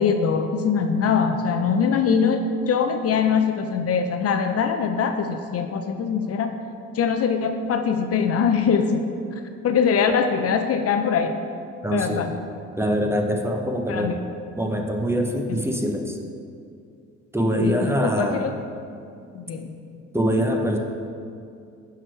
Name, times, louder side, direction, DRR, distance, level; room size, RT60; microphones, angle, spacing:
voice 1, 0.0-6.5 6.9-9.0 9.6-11.3 11.9-12.3 13.9-14.2 17.6-18.5 19.3-19.7, left 6 dB, 55° left, 7 dB, 0.4 m, -22 dB
voice 2, 11.8-12.3 12.8-14.2 14.6-16.2 17.3-18.4 20.1-20.8, equal, 10° right, 2 dB, 0.6 m, -23 dB
5.9 x 4.7 x 4.5 m, 2.4 s
cardioid pair, 90°, 30 cm